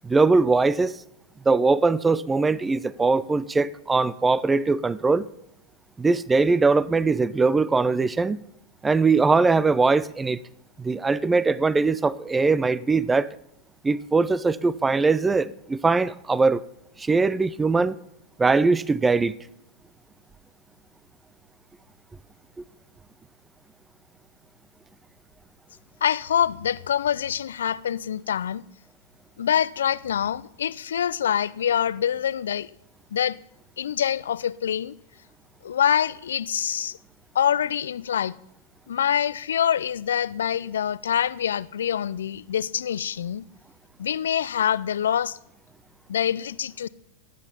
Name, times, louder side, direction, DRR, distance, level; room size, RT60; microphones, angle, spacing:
voice 1, 0.0-1.0 1.5-5.3 6.0-8.4 8.8-10.4 10.8-13.3 13.8-16.6 17.0-18.0 18.4-19.3, right 4 dB, 15° right, 0.5 m, -21 dB
voice 2, 26.0-28.6 29.4-32.7 33.1-33.4 33.8-34.9 35.6-37.0 37.3-38.4 38.9-43.5 44.0-45.4 46.1-46.9, left 9 dB, 75° left, 0.4 m, -25 dB
18.0 x 9.1 x 5.7 m
hypercardioid pair, 100°, 0 cm